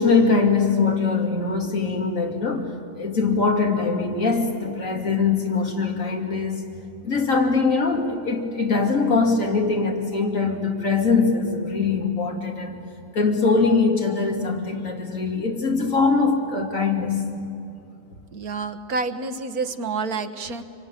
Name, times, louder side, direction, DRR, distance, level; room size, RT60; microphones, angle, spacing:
voice 1, 0.0-2.7 2.9-6.6 7.0-12.8 13.1-17.2, left 4 dB, 60° left, 2 dB, 2.9 m, -22 dB
voice 2, 18.3-20.6, right 4 dB, 80° right, 9 dB, 1.7 m, -28 dB
25.5 x 24.0 x 9.8 m, 2.7 s
omnidirectional pair, 1.6 m